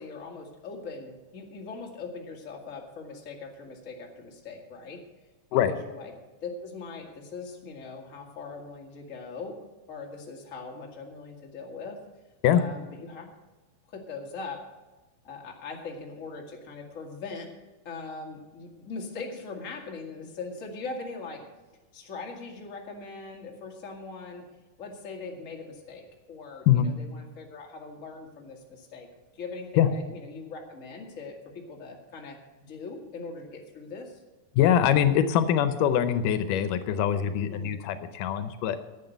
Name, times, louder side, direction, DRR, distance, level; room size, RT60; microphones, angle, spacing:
voice 1, 0.0-5.0 5.7-6.1 6.4-9.6 9.9-12.0 12.5-13.3 13.9-14.6 15.2-17.5 17.8-21.5 21.9-24.4 24.8-29.1 29.4-34.2 37.5-37.8, left 4 dB, 30° left, 1 dB, 1.7 m, -40 dB
voice 2, 34.5-38.8, left 9 dB, 80° left, 11 dB, 2.3 m, -23 dB
10.5 x 8.4 x 8.0 m, 1.2 s
omnidirectional pair, 3.7 m